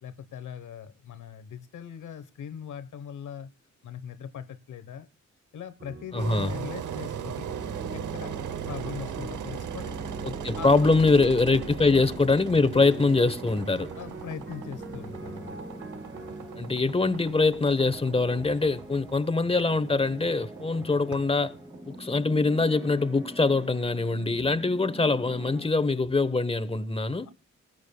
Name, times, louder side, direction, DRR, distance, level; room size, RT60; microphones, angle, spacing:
voice 1, 0.0-3.5 3.8-5.1 5.5-7.5 7.9-8.4 8.7-10.0 10.5-11.3 11.9-12.2 13.9-15.6 27.2-27.3, left 8 dB, 75° left, 1.1 m, -40 dB
sound 1, 5.8-18.3, right 3 dB, 45° right, 3.6 m, -45 dB
voice 2, 6.1-6.5 10.2-13.9 16.6-21.5 21.9-27.3, left 3 dB, 20° left, 1.1 m, -23 dB
Engine, 6.2-23.1, right 9 dB, 75° right, 0.8 m, -39 dB
sound 2, 6.9-25.7, equal, 10° right, 2.1 m, -44 dB
19.0 x 14.0 x 2.3 m
cardioid pair, 55°, 31 cm